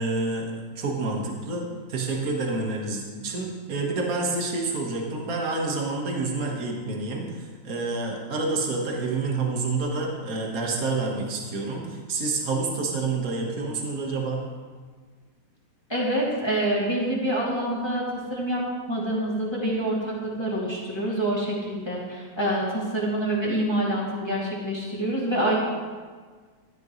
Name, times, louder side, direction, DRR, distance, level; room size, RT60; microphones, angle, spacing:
voice 1, 0.0-14.4, right 3 dB, 50° right, -1 dB, 2.0 m, -28 dB
voice 2, 15.9-18.0 18.3-18.6 18.9-25.5, right 1 dB, 15° left, -7 dB, 2.7 m, -26 dB
15.0 x 12.0 x 3.2 m, 1.5 s
omnidirectional pair, 2.0 m